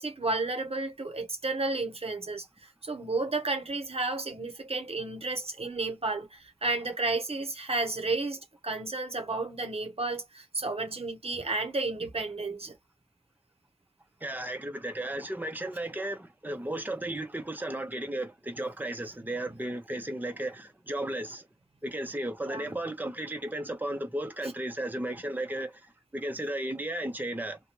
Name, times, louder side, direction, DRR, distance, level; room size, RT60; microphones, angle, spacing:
voice 1, 0.0-12.7 22.5-22.7, right 3 dB, 70° right, 0.7 m, -32 dB
voice 2, 14.2-21.5 21.8-25.7 26.1-27.6, right 1 dB, 15° right, 0.7 m, -34 dB
2.8 x 2.2 x 2.9 m
wide cardioid pair, 55°, 11 cm